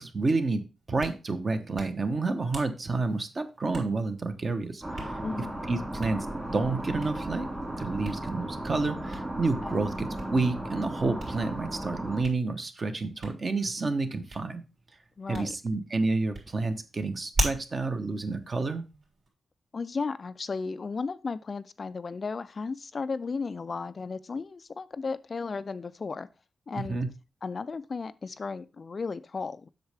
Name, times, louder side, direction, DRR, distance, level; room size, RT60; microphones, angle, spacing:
voice 1, 0.0-5.2 5.7-6.3 6.5-7.5 7.8-14.6 15.3-18.8 26.7-27.1, right 3 dB, 35° right, 0.9 m, -29 dB
Hands, 0.8-19.3, right 2 dB, 60° right, 3.2 m, -41 dB
sound 1, 4.8-12.2, right 1 dB, 20° right, 2.2 m, -35 dB
voice 2, 5.2-5.5 9.6-9.8 15.2-15.6 19.7-26.3 26.7-27.0 27.4-29.7, left 4 dB, 40° left, 0.3 m, -34 dB
7.9 x 6.5 x 3.4 m
wide cardioid pair, 140°, 0 cm